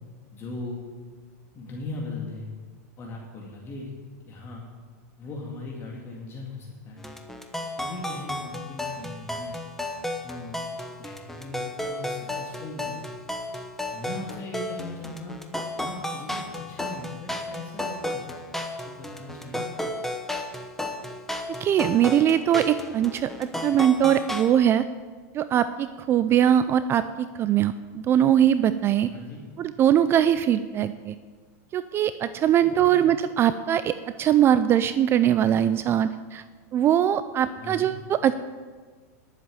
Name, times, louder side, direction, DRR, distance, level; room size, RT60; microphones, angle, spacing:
voice 1, 0.3-0.8 1.5-2.5 3.0-3.9 4.3-4.6 5.2-7.0 7.8-9.5 10.2-10.6 11.0-13.1 13.9-15.4 15.8-18.3 18.9-19.7 29.1-29.4 32.6-33.1 37.6-37.9, left 2 dB, 30° left, -2 dB, 2.2 m, -39 dB
sound 1, 7.0-24.5, left 1 dB, 5° left, 1.1 m, -33 dB
voice 2, 21.6-24.8 25.3-29.1 29.6-31.1 31.7-36.4 36.7-38.3, right 10 dB, 30° right, 13 dB, 0.4 m, -21 dB
11.0 x 7.5 x 8.7 m, 1.5 s
supercardioid pair, 130°, 9 cm